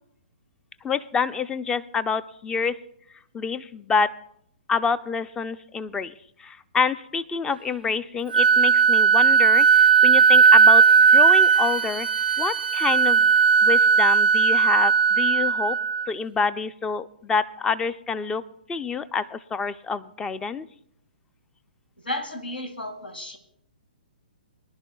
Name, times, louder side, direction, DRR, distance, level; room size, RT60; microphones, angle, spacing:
voice 1, 0.8-2.8 3.3-4.1 4.7-6.1 6.4-12.1 12.4-13.3 13.6-15.8 16.1-18.4 18.7-20.6, left 5 dB, 10° left, 16 dB, 0.4 m, -27 dB
Wind instrument woodwind instrument, 8.3-16.1, right 6 dB, 80° right, 0.3 m, -17 dB
voice 2, 22.0-23.4, left 1 dB, 85° left, 8 dB, 1.8 m, -33 dB
23.0 x 11.0 x 2.3 m, 0.70 s
figure-of-eight pair, 125°, 5 cm